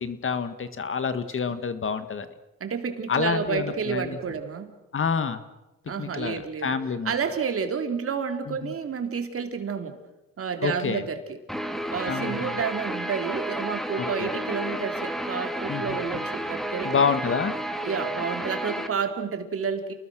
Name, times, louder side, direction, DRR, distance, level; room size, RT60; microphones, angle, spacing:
voice 1, 0.0-2.3 3.1-4.2 4.9-5.4 6.0-7.1 8.5-8.7 10.6-11.0 12.1-12.5 13.9-14.3 15.7-16.2 16.8-17.5, left 5 dB, 45° left, 11 dB, 1.8 m, -28 dB
voice 2, 2.6-4.8 5.9-6.8 7.0-10.0 10.4-11.4 11.9-16.9 17.8-19.9, right 6 dB, 50° right, 6 dB, 3.3 m, -30 dB
Guitar, 11.5-18.9, right 1 dB, ahead, 2.4 m, -31 dB
29.5 x 20.0 x 6.3 m, 1.0 s
cardioid pair, 90°, 30 cm